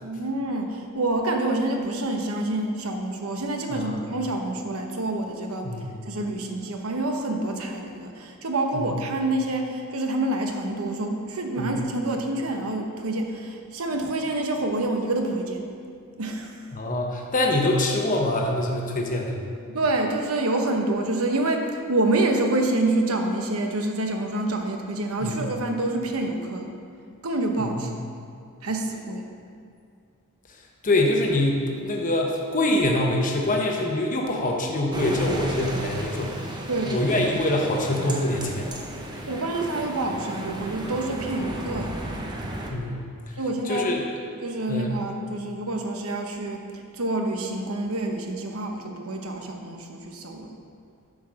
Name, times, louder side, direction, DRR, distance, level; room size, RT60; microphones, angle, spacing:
voice 1, 0.0-5.7 6.0-15.6 16.2-16.7 19.7-26.7 27.2-27.9 28.6-29.3 36.7-37.2 39.3-42.0 43.3-43.9 44.4-50.5, right 2 dB, 80° right, 3 dB, 1.0 m, -27 dB
voice 2, 16.7-19.4 25.2-25.3 30.8-36.4 36.9-38.7 42.7-43.1 43.7-44.0 44.7-44.9, left 1 dB, 40° left, 0 dB, 0.9 m, -24 dB
sound 1, 34.9-42.7, right 1 dB, 20° right, 0.8 m, -34 dB
9.9 x 5.0 x 6.2 m, 2.3 s
head